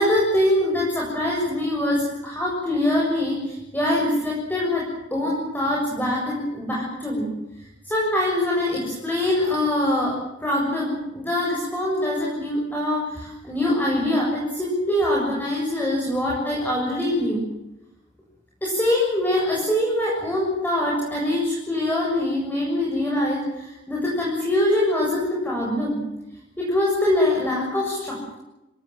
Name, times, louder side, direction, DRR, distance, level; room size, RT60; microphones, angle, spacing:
voice 1, 0.0-7.3 7.9-10.1 10.4-17.4 18.6-26.0 26.6-28.4, left 1 dB, 10° left, -3 dB, 7.1 m, -23 dB
26.5 x 19.5 x 7.6 m, 0.96 s
head